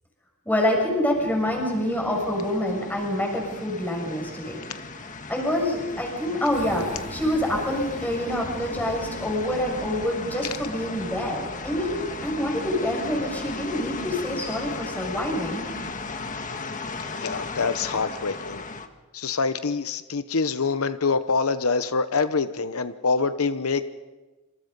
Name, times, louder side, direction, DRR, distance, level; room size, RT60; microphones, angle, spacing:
voice 1, 0.5-4.6 5.3-15.7, left 1 dB, 10° left, -1 dB, 7.1 m, -26 dB
sound 1, 1.1-18.9, left 3 dB, 35° left, 1.6 m, -36 dB
sound 2, 6.5-16.5, equal, 30° right, 4.0 m, -43 dB
voice 2, 17.2-18.6 19.1-23.8, left 4 dB, 70° left, 12 dB, 0.9 m, -25 dB
27.5 x 27.0 x 5.4 m, 1.2 s
head